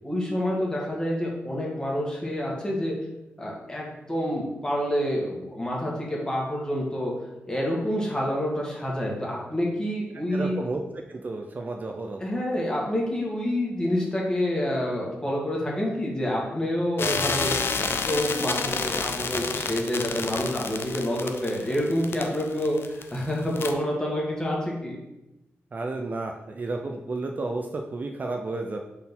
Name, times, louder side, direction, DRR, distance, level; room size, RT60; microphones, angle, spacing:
voice 1, 0.0-2.9 3.4-7.1 7.4-10.6 12.2-25.0, equal, 15° left, -3 dB, 1.6 m, -28 dB
voice 2, 10.3-10.8 11.1-12.3 25.7-28.8, right 3 dB, 40° right, 3 dB, 0.4 m, -32 dB
sound 1, 17.0-23.2 23.6-23.7, left 4 dB, 60° left, 0.5 m, -29 dB
4.3 x 3.9 x 5.5 m, 0.94 s
wide cardioid pair, 115°, 5 cm